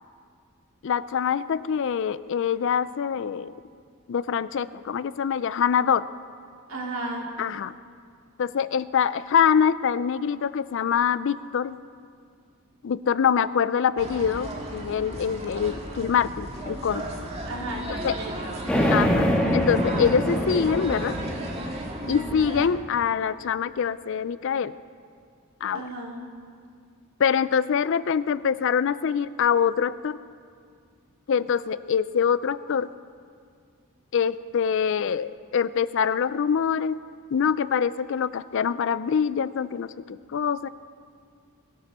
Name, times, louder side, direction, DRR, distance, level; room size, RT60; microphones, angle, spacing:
voice 1, 0.8-3.5 4.1-6.0 7.4-7.8 8.4-11.8 12.8-17.1 18.0-18.1 18.9-19.3 19.5-21.2 22.1-24.7 25.6-25.8 27.2-30.2 31.3-32.9 34.1-37.0 37.3-40.7, left 7 dB, 60° left, 16 dB, 0.4 m, -24 dB
voice 2, 6.7-7.3 17.4-18.7 22.0-22.4 25.7-26.2, right 1 dB, 65° right, -2 dB, 2.7 m, -35 dB
sound 1, 14.0-22.7, right 1 dB, 30° right, 1.8 m, -35 dB
sound 2, 18.7-22.6, equal, 5° left, 1.9 m, -25 dB
22.0 x 13.0 x 4.2 m, 2.2 s
head